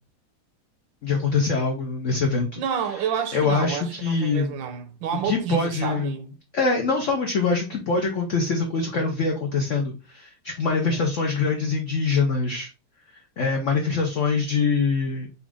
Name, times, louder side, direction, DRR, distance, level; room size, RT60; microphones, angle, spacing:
voice 1, 1.0-2.6 3.3-4.5 5.2-6.1 6.5-12.7 13.4-15.3, left 4 dB, 90° left, 0.6 m, -24 dB
voice 2, 2.6-6.3 10.7-11.1, right 8 dB, 75° right, 1.3 m, -30 dB
4.1 x 2.5 x 3.4 m
omnidirectional pair, 2.2 m